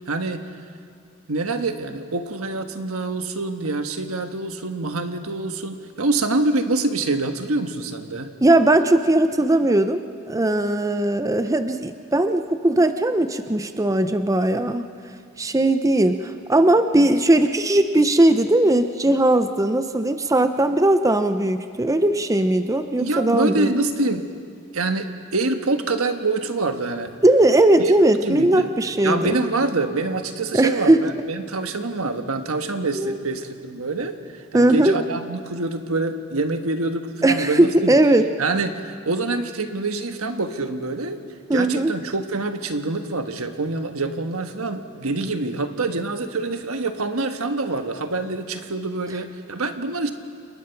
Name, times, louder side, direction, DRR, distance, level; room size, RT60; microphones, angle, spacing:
voice 1, 0.1-0.4 1.3-8.3 23.0-24.3 24.7-27.1 27.8-27.9 28.2-28.7 29.0-34.2 34.5-37.9 38.4-41.2 41.5-50.1, right 3 dB, 75° right, 7 dB, 1.4 m, -25 dB
voice 2, 8.4-14.9 15.4-23.7 27.2-29.4 30.5-31.1 33.0-33.2 34.5-35.0 37.2-38.3 41.5-41.9, right 1 dB, 15° right, 9 dB, 0.6 m, -19 dB
29.5 x 20.0 x 5.9 m, 2.2 s
head